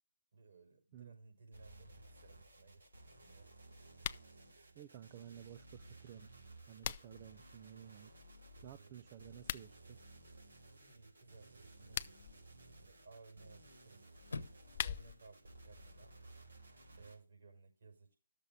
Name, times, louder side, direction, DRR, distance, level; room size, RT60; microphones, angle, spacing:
voice 1, 0.3-3.5 8.5-9.2 10.8-16.1 17.0-18.1, right 4 dB, 65° right, 5.2 m, -60 dB
sound 1, 1.5-17.2, right 1 dB, 85° right, 3.4 m, -58 dB
sound 2, 3.9-4.3 6.3-7.3 9.3-9.7 11.7-12.4 14.4-15.3, left 10 dB, 40° left, 0.4 m, -42 dB
voice 2, 4.8-6.3 6.7-8.1 8.6-10.0, right 10 dB, 35° right, 0.4 m, -54 dB
Chirp tweet / Car / Slam, 6.5-16.5, left 3 dB, 85° left, 1.0 m, -57 dB
12.5 x 6.7 x 3.6 m
figure-of-eight pair, 145°, 0 cm